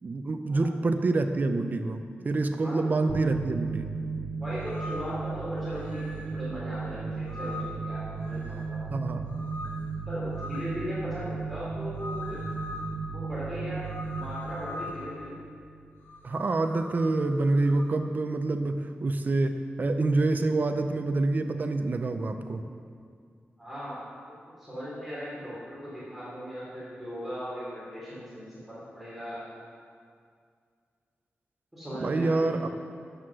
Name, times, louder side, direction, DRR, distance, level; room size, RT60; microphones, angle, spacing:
voice 1, 0.0-3.9 8.9-9.3 16.2-22.7 32.0-32.7, right 2 dB, 45° right, 7 dB, 0.6 m, -27 dB
sound 1, 3.1-16.3, right 4 dB, 80° right, 0.8 m, -35 dB
voice 2, 4.4-8.8 10.1-12.4 13.1-15.3 23.6-24.0 24.6-29.4 31.7-32.4, equal, ahead, -10 dB, 3.3 m, -38 dB
sound 2, 4.5-5.1 5.8-6.3 7.3-7.8 8.2-8.7 9.2-9.8 10.3-10.8 12.0-12.9 13.8-15.2 16.0-17.9, left 3 dB, 70° left, 2.4 m, -42 dB
10.0 x 7.9 x 6.2 m, 2.2 s
wide cardioid pair, 140°, 4 cm